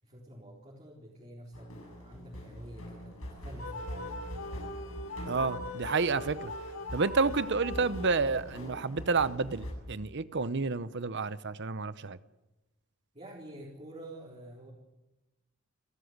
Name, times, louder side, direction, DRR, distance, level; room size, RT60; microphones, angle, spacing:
voice 1, 0.0-4.2 13.1-14.7, right 1 dB, 30° right, -3 dB, 4.1 m, -48 dB
sound 1, 1.5-9.7, equal, 85° left, 7.8 m, -44 dB
sound 2, 3.6-8.5, left 1 dB, 70° left, 2.8 m, -41 dB
voice 2, 5.3-6.5 6.9-12.2, right 4 dB, 60° right, 15 dB, 0.8 m, -30 dB
29.5 x 13.5 x 8.1 m, 1.0 s
head